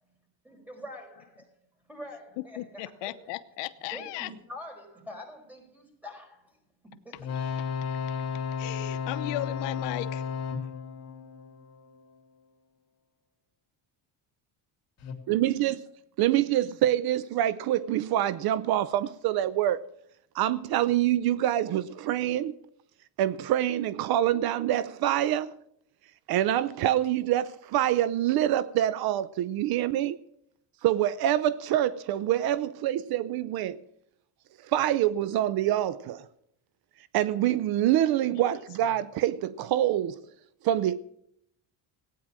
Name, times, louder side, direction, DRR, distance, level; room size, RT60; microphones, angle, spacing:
voice 1, 0.4-1.3 1.9-3.2 3.9-6.6 6.8-7.3, left 1 dB, 5° right, 5.0 m, -45 dB
voice 2, 2.4-4.3 8.6-10.2 38.3-38.5 38.8-38.9, left 17 dB, 85° left, 1.0 m, -36 dB
sound 1, 7.2-12.2 15.0-15.1, left 6 dB, 35° left, 3.2 m, -34 dB
voice 3, 15.3-15.8 16.2-19.8 20.3-22.5 23.2-25.6 26.3-30.2 30.8-33.8 34.7-36.2 37.1-40.2 40.6-41.0, right 12 dB, 60° right, 0.7 m, -26 dB
16.5 x 9.5 x 7.5 m
cardioid pair, 135°, 41 cm